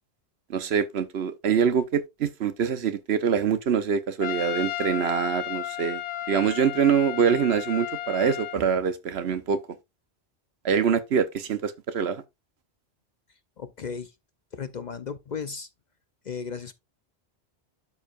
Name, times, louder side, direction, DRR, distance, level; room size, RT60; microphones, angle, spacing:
voice 1, 0.5-6.0 6.3-9.6 10.6-12.2, right 7 dB, 70° right, 1.1 m, -24 dB
Trumpet, 4.2-8.6, left 13 dB, 85° left, 0.9 m, -33 dB
voice 2, 13.6-14.1 14.5-15.7 16.2-16.7, left 6 dB, 50° left, 0.6 m, -35 dB
12.0 x 4.8 x 2.4 m
omnidirectional pair, 1.1 m